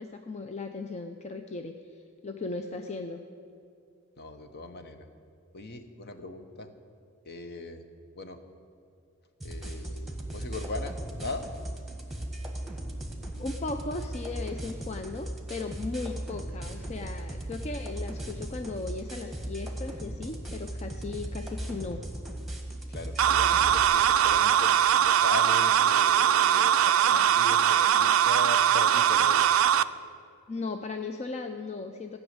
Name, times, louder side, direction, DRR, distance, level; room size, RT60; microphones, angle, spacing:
voice 1, 0.0-2.0 2.2-3.2 13.4-22.1 30.5-32.2, left 3 dB, 35° left, 5 dB, 0.5 m, -37 dB
voice 2, 4.2-5.1 5.5-6.7 7.2-7.8 8.1-8.4 9.4-11.5 22.9-29.6, left 2 dB, 50° left, 8 dB, 1.0 m, -39 dB
sound 1, 9.4-23.8, right 1 dB, ahead, 1.5 m, -37 dB
sound 2, 23.2-29.8, right 9 dB, 70° right, 0.4 m, -21 dB
15.0 x 6.3 x 9.5 m, 2.5 s
head